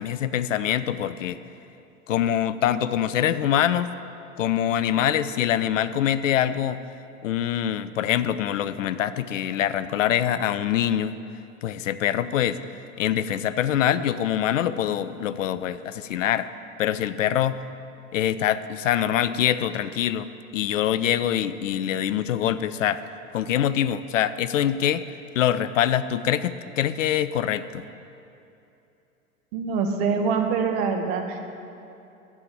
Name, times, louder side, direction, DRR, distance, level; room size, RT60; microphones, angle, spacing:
voice 1, 0.0-1.4 2.1-3.9 4.4-6.8 7.2-11.1 11.6-12.6 13.0-16.5 16.8-17.6 18.1-20.3 20.5-23.0 23.3-25.0 25.3-27.8, left 10 dB, 65° left, 14 dB, 0.6 m, -24 dB
voice 2, 29.5-31.4, right 5 dB, 50° right, 4 dB, 1.6 m, -24 dB
10.5 x 7.7 x 8.6 m, 2.8 s
figure-of-eight pair, 90°, 42 cm